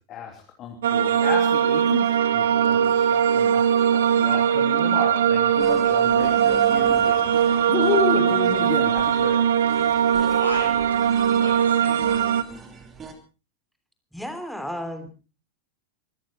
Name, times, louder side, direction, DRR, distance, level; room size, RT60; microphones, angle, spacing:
voice 1, 0.0-7.3 7.7-9.5, left 7 dB, 35° left, 2 dB, 2.9 m, -31 dB
sound 1, 0.8-12.4, right 8 dB, 60° right, 0.9 m, -20 dB
sound 2, 5.6-13.1, right 5 dB, 25° right, 3.0 m, -41 dB
voice 2, 10.1-12.3, right 1 dB, 80° right, 2 dB, 7.8 m, -37 dB
voice 3, 14.1-15.1, equal, ahead, 8 dB, 3.2 m, -33 dB
24.0 x 13.5 x 4.2 m, 0.34 s
figure-of-eight pair, 90°, 0 cm